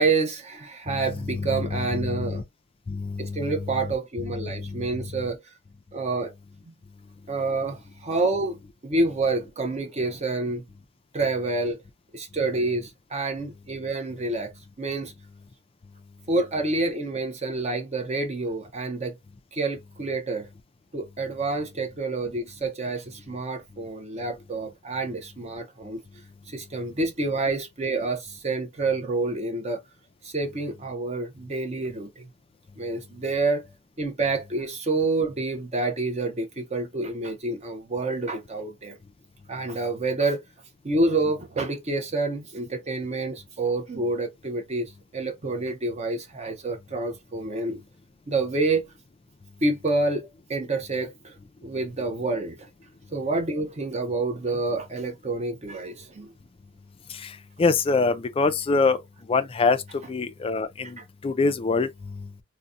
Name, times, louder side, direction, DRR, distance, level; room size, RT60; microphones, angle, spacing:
voice 1, 0.0-2.4 3.2-5.4 5.9-6.3 7.3-10.6 11.1-11.8 12.1-14.5 14.8-15.1 16.3-19.1 19.5-20.5 20.9-26.0 26.5-29.8 30.2-32.2 32.8-33.7 34.0-38.9 39.5-40.4 40.8-47.8 48.3-48.8 49.6-51.3 51.6-52.6 53.1-56.3, right 3 dB, 30° right, 0.5 m, -28 dB
voice 2, 0.9-2.4 2.9-5.3 57.1-59.0 59.3-59.8 60.1-62.3, left 4 dB, 25° left, 0.3 m, -26 dB
3.9 x 2.1 x 2.4 m
head